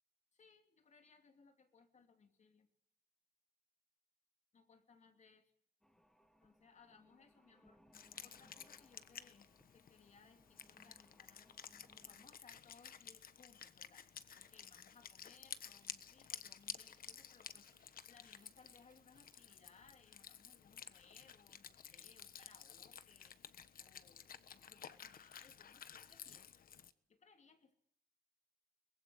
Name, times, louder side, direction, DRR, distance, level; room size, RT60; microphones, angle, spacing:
voice 1, 0.3-2.7 4.5-5.5 6.4-7.8 8.2-11.5 12.0-26.6 27.1-27.7, left 5 dB, 45° left, 6 dB, 2.9 m, -67 dB
sound 1, 5.8-12.3, equal, 5° left, 2.1 m, -69 dB
Wind instrument woodwind instrument, 7.9-26.9, left 8 dB, 60° left, 1.3 m, -54 dB
sound 2, 14.3-19.8, right 4 dB, 25° right, 5.9 m, -73 dB
23.5 x 21.0 x 8.6 m, 0.72 s
wide cardioid pair, 130°, 17 cm